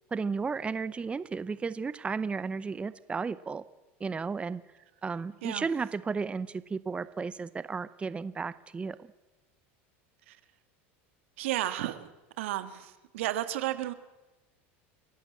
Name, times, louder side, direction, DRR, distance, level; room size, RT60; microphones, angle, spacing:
voice 1, 0.1-3.6 4.0-4.6 5.0-9.1, right 5 dB, 15° right, 15 dB, 0.8 m, -33 dB
voice 2, 11.4-12.1 12.4-13.9, right 14 dB, 85° right, 11 dB, 1.9 m, -33 dB
30.0 x 11.5 x 8.6 m, 1.1 s
supercardioid pair, 115°, 7 cm